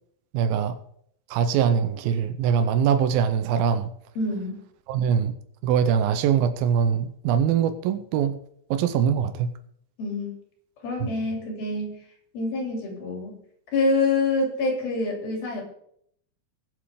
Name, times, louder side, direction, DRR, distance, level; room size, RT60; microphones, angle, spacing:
voice 1, 0.3-0.8 1.3-3.9 4.9-5.4 5.6-8.4 8.7-9.5 11.0-11.1, right 8 dB, 90° right, 9 dB, 2.6 m, -22 dB
voice 2, 4.2-4.6 10.0-10.3 10.8-12.0 12.3-13.3 13.7-15.6, left 3 dB, 80° left, 0 dB, 5.0 m, -26 dB
21.0 x 7.4 x 3.7 m, 0.68 s
omnidirectional pair, 4.2 m